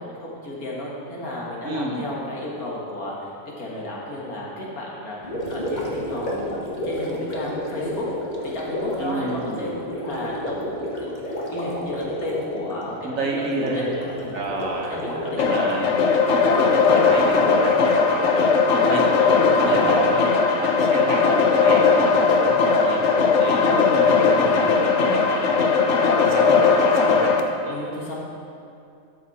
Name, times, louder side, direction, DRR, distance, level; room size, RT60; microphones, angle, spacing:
voice 1, 0.0-8.1 8.4-14.4 14.9-15.8 19.5-19.7 23.9-24.6 26.0-26.3 27.6-28.1, left 1 dB, 80° left, -4 dB, 2.2 m, -33 dB
voice 2, 1.6-2.1 9.0-9.7 13.0-14.0 14.3-15.0 15.4-15.9 16.6-19.1 19.6-20.3 20.6-25.5 25.8-27.3, right 2 dB, 70° right, 1 dB, 1.5 m, -30 dB
Gurgling, 5.2-20.5, equal, 30° left, 1.4 m, -32 dB
sound 1, 15.4-27.4, left 5 dB, 60° left, 1.0 m, -18 dB
12.5 x 6.5 x 4.2 m, 2.6 s
omnidirectional pair, 1.5 m